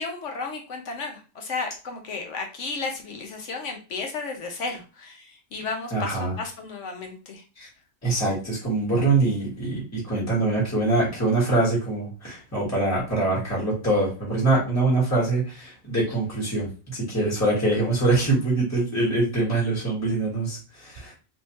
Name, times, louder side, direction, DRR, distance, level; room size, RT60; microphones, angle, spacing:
voice 1, 0.0-7.4, left 4 dB, 70° left, 3 dB, 1.2 m, -33 dB
voice 2, 5.9-6.3 7.6-7.7 8.0-21.1, right 2 dB, 15° left, -5 dB, 1.5 m, -24 dB
3.4 x 2.9 x 2.9 m, 0.34 s
omnidirectional pair, 1.3 m